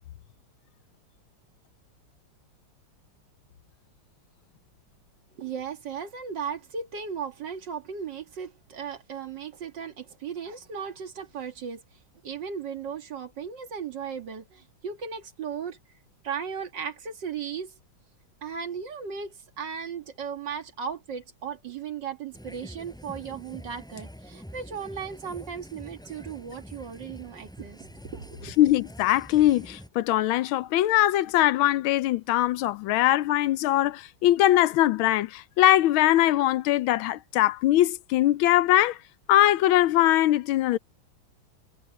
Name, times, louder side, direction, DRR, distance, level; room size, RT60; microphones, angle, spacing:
voice 1, 5.4-11.8 12.2-15.8 16.2-17.8 18.4-28.5, right 6 dB, 60° right, 2.3 m, -36 dB
sound 1, 22.3-29.9, equal, ahead, 7.6 m, -45 dB
voice 2, 28.6-39.0 39.3-40.8, left 14 dB, 85° left, 1.5 m, -21 dB
omnidirectional pair, 2.2 m